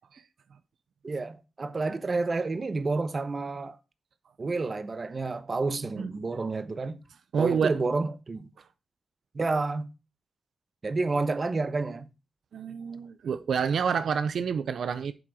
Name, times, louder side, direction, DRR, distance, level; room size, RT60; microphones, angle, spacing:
voice 1, 1.0-3.8 4.4-7.0 7.4-8.5 9.3-9.9 10.8-12.1, right 3 dB, 35° right, 1.0 m, -29 dB
voice 2, 7.3-7.7 12.5-15.1, right 6 dB, 80° right, 0.6 m, -28 dB
8.0 x 7.7 x 4.8 m
wide cardioid pair, 125°, 0 cm